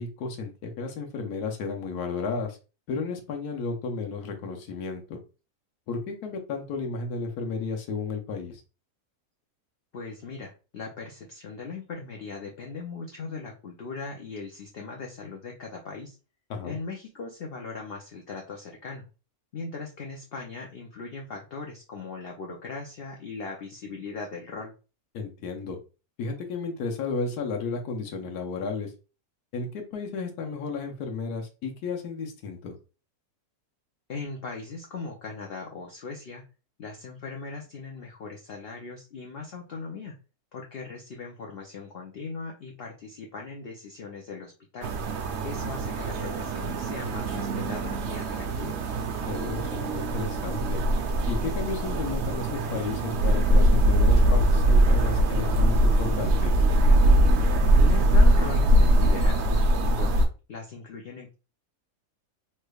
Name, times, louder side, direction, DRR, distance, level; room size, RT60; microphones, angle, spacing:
voice 1, 0.0-2.6 2.9-5.2 5.9-8.6 16.5-16.8 25.1-25.8 26.2-28.9 29.5-32.7 49.3-50.8 51.3-56.6, left 4 dB, 90° left, 3 dB, 1.2 m, -33 dB
voice 2, 9.9-16.2 16.6-19.0 19.5-24.7 34.1-36.4 36.8-40.1 40.5-44.9 45.4-48.8 57.8-60.1 60.5-61.3, left 4 dB, 60° left, 0 dB, 0.6 m, -39 dB
sound 1, 44.8-60.3, right 1 dB, 65° right, 0.7 m, -22 dB
3.2 x 3.1 x 2.3 m, 0.32 s
omnidirectional pair, 1.6 m